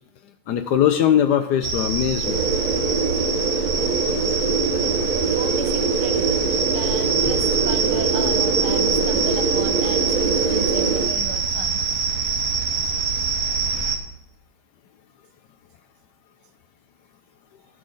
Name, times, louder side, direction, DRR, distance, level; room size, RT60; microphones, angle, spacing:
voice 1, 0.5-2.4 4.2-4.4, left 10 dB, 75° left, 8 dB, 0.9 m, -20 dB
sound 1, 1.6-14.0, right 5 dB, 55° right, 1.1 m, -24 dB
sound 2, 2.2-11.1, right 4 dB, 35° right, 0.7 m, -23 dB
voice 2, 5.3-11.8, right 8 dB, 90° right, 8 dB, 1.7 m, -35 dB
13.5 x 6.3 x 3.9 m, 0.86 s
omnidirectional pair, 2.3 m